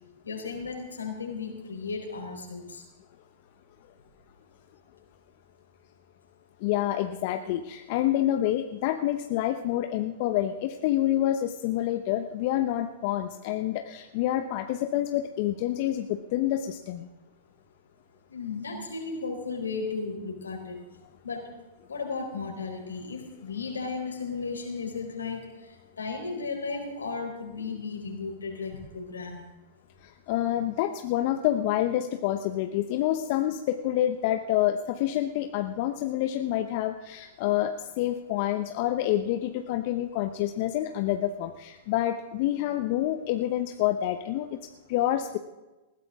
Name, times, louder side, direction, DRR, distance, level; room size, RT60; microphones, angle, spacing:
voice 1, 0.2-2.8 18.3-20.8 21.2-21.5 21.9-29.4, left 4 dB, 85° left, 3 dB, 4.1 m, -35 dB
voice 2, 6.6-17.1 30.0-45.4, left 13 dB, 55° left, 7 dB, 1.0 m, -28 dB
20.0 x 16.0 x 3.7 m, 1.1 s
hypercardioid pair, 105°, 0 cm